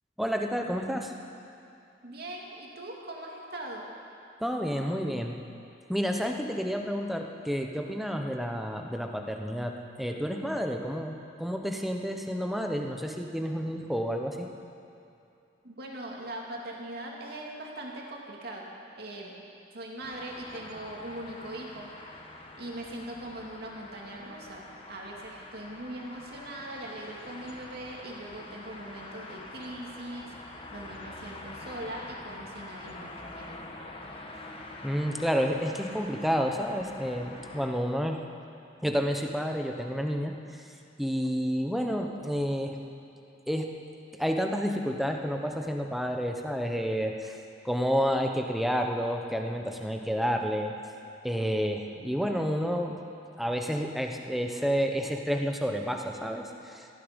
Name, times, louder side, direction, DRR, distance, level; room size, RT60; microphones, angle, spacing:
voice 1, 0.2-1.1 4.4-5.4 5.9-14.5 34.8-38.2 38.8-40.7 41.0-42.8 43.5-43.7 44.1-47.4 47.6-50.7 51.2-53.0 53.4-56.9, equal, ahead, 2 dB, 1.0 m, -30 dB
voice 2, 2.0-3.9 15.6-19.3 19.7-21.9 22.5-30.3 30.7-33.6, right 1 dB, 55° right, -2 dB, 2.5 m, -41 dB
sound 1, 20.0-37.7, left 2 dB, 30° left, 1.3 m, -45 dB
18.0 x 14.0 x 5.3 m, 2.7 s
head